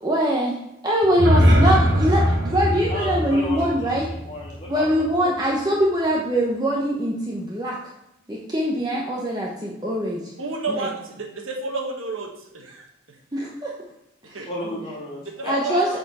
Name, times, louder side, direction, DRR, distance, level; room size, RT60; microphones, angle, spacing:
voice 1, 0.0-0.6 0.8-4.0 4.7-7.7 8.3-10.2 10.7-10.9 13.3-13.7 14.3-14.4 15.5-16.0, equal, 20° right, -3 dB, 0.8 m, -23 dB
sound 1, 1.0-5.1, equal, 55° right, 1.1 m, -21 dB
voice 2, 2.8-4.9 5.2-5.4 14.4-15.8, left 1 dB, 30° left, -6 dB, 2.8 m, -33 dB
voice 3, 10.4-12.9 14.2-14.5 15.4-16.0, right 3 dB, 85° right, 2 dB, 1.3 m, -31 dB
8.1 x 4.4 x 4.1 m, 0.87 s
head